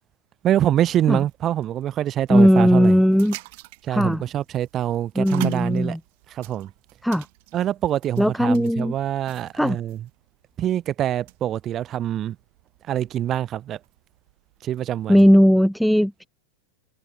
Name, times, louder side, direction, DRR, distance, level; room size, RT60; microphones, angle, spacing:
voice 1, 0.4-3.0 3.8-6.0 6.3-6.7 7.5-10.0 10.6-12.4 12.9-13.8 14.6-15.2, right 11 dB, 30° right, 0.8 m, -25 dB
sound 1, 0.7-15.4, right 25 dB, 50° right, 2.5 m, -43 dB
voice 2, 2.3-3.4 3.9-4.2 5.2-6.0 7.0-7.3 8.2-8.9 9.6-9.8 15.1-16.3, equal, ahead, 0.3 m, -17 dB
figure-of-eight pair, 90°, 0 cm